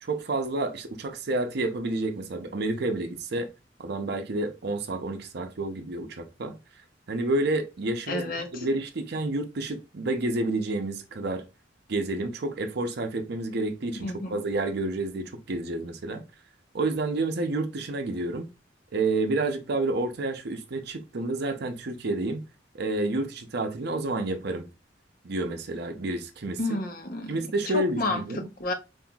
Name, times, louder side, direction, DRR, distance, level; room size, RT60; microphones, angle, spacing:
voice 1, 0.0-3.5 3.8-6.6 7.1-11.4 11.9-16.2 16.7-18.5 18.9-22.4 22.7-24.7 25.2-26.6 27.3-28.5, right 2 dB, 60° right, 0.6 m, -29 dB
voice 2, 8.1-8.6 14.0-14.4 26.6-27.4 27.7-28.7, left 2 dB, 50° left, 0.8 m, -31 dB
5.5 x 2.6 x 2.3 m
head